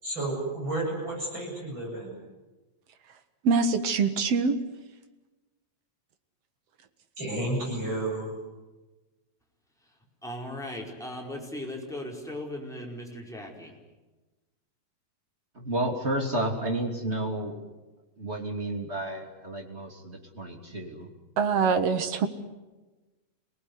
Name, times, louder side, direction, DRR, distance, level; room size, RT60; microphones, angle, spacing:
voice 1, 0.0-2.1 7.2-8.4, right 1 dB, 40° right, -1 dB, 8.6 m, -31 dB
voice 2, 3.4-4.6 21.4-22.3, right 5 dB, 60° right, 9 dB, 2.4 m, -24 dB
voice 3, 10.2-13.7, left 1 dB, ahead, -1 dB, 4.8 m, -38 dB
voice 4, 15.5-17.6 18.2-21.1, right 1 dB, 20° right, 2 dB, 3.0 m, -31 dB
28.0 x 19.0 x 9.7 m, 1.2 s
omnidirectional pair, 3.3 m